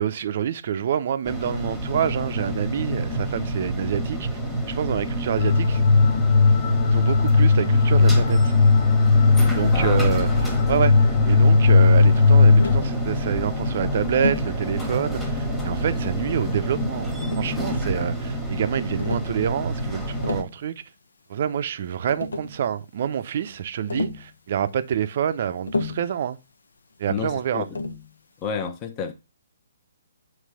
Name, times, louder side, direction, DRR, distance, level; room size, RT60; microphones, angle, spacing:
voice 1, 0.0-5.8 6.9-8.5 9.5-10.3 10.7-20.8 21.3-26.4 27.0-27.7, right 9 dB, 50° right, 0.6 m, -27 dB
sound 1, 1.2-20.4, right 1 dB, ahead, 1.4 m, -28 dB
sound 2, 5.4-12.8, left 4 dB, 55° left, 0.9 m, -17 dB
voice 2, 9.7-10.1 27.1-27.8 28.4-29.1, left 6 dB, 25° left, 0.9 m, -30 dB
Tap, 12.6-12.9 14.2-14.5 15.6-16.2 17.2-18.0 19.0-19.3 20.0-20.6 21.7-21.8 22.1-22.6 23.9-24.3 25.7-26.1 27.7-28.1, left 3 dB, 85° left, 0.9 m, -30 dB
7.5 x 3.2 x 4.8 m
hypercardioid pair, 150°, 0 cm